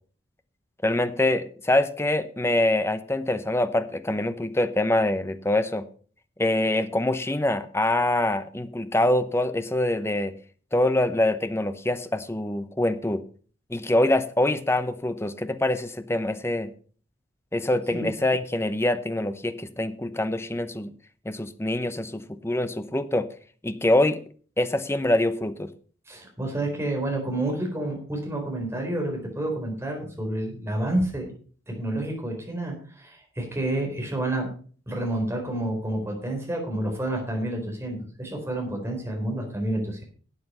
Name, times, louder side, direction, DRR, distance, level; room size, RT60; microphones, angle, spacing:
voice 1, 0.8-5.9 6.4-10.3 10.7-13.2 13.7-16.7 17.5-20.9 21.2-23.3 23.6-24.2 24.6-25.7, left 1 dB, 15° left, 11 dB, 0.8 m, -24 dB
voice 2, 26.1-31.3 31.7-34.5 34.9-40.0, right 1 dB, 15° right, 1 dB, 4.1 m, -29 dB
12.5 x 8.4 x 5.5 m, 0.42 s
head